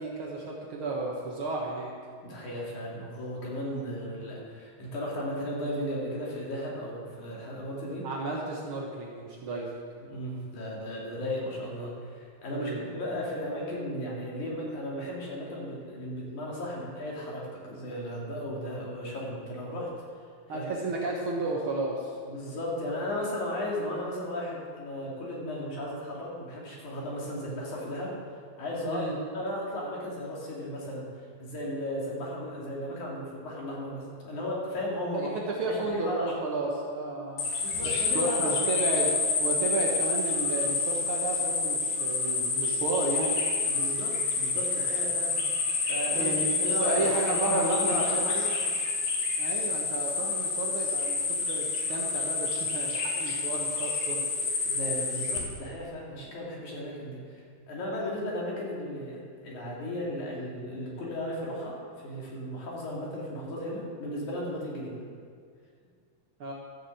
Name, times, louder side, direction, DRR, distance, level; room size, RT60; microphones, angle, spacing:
voice 1, 0.0-1.9 8.0-9.7 12.5-12.9 20.5-22.2 28.8-29.2 35.1-37.5 37.8-39.1 39.4-43.3 46.1-46.5 46.8-48.5 49.4-54.3 66.4-66.5, right 2 dB, 90° right, -2 dB, 1.1 m, -32 dB
voice 2, 2.2-8.0 10.0-19.9 20.5-20.7 22.3-28.2 28.6-29.0 29.3-31.1 31.4-35.3 35.7-36.3 37.6-38.6 43.7-45.4 45.9-46.3 46.6-48.7 54.7-57.2 57.7-61.8 62.0-65.1, left 1 dB, 55° left, -4 dB, 3.7 m, -35 dB
sound 1, 37.4-55.4, left 4 dB, 90° left, 3.7 m, -28 dB
13.0 x 6.8 x 7.7 m, 2.1 s
omnidirectional pair, 4.2 m